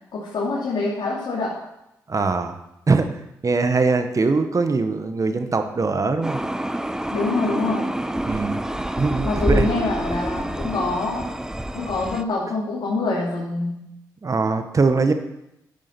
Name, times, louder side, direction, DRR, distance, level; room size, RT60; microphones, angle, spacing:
voice 1, 0.1-1.6 7.1-7.9 9.2-11.3 11.7-13.8, left 3 dB, 65° left, -6 dB, 3.0 m, -25 dB
voice 2, 2.1-2.5 2.9-3.2 3.4-6.4 8.2-8.6 8.9-9.7 14.2-15.1, right 4 dB, 40° right, 8 dB, 1.3 m, -21 dB
sound 1, 6.2-12.2, right 1 dB, 5° right, 0.8 m, -27 dB
10.5 x 7.4 x 6.0 m, 0.87 s
supercardioid pair, 50°, 8 cm